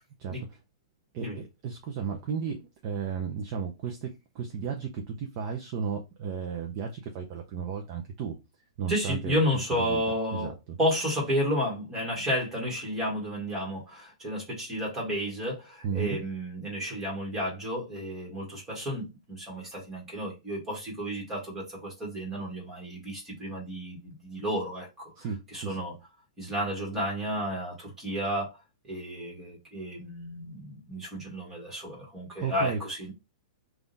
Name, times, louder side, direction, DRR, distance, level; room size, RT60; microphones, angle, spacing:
voice 1, 0.2-0.6 1.1-8.4 8.8-9.4 9.7-10.0 10.3-10.8 15.8-16.2 25.2-25.8 32.4-32.8, right 6 dB, 25° right, 0.5 m, -34 dB
voice 2, 8.9-10.5 10.8-25.3 25.5-25.9 26.4-28.5 28.8-33.1, equal, 10° right, 1.4 m, -32 dB
3.6 x 2.4 x 3.9 m
hypercardioid pair, 170°, 3 cm